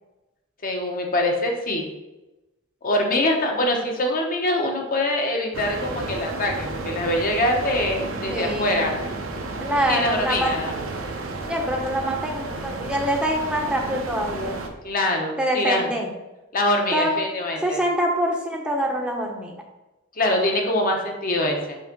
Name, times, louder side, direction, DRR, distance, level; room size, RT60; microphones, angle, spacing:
voice 1, 0.6-1.9 2.8-8.9 9.9-10.8 14.8-15.9 16.5-17.8 20.2-21.8, left 1 dB, 45° left, 1 dB, 1.0 m, -24 dB
sound 1, 5.5-14.7, right 2 dB, 90° right, 0.8 m, -32 dB
voice 2, 8.3-8.9 9.6-10.5 11.4-14.6 15.4-16.1 16.9-17.1 17.6-19.5, equal, 5° right, 0 dB, 0.7 m, -25 dB
5.6 x 3.5 x 5.2 m, 1.0 s
head